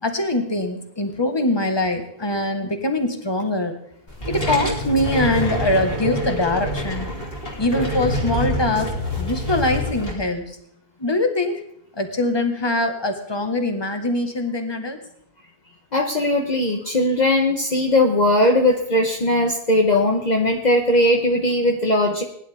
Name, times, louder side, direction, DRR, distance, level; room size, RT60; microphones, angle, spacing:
voice 1, 0.0-3.8 4.2-7.1 7.6-10.6 11.0-11.6 12.0-15.0, left 2 dB, 25° left, 5 dB, 1.6 m, -23 dB
sound 1, 4.1-10.1, equal, 65° left, 3.1 m, -26 dB
voice 2, 15.9-22.2, left 1 dB, 45° left, 1 dB, 1.2 m, -19 dB
20.0 x 11.0 x 3.5 m, 0.71 s
omnidirectional pair, 1.0 m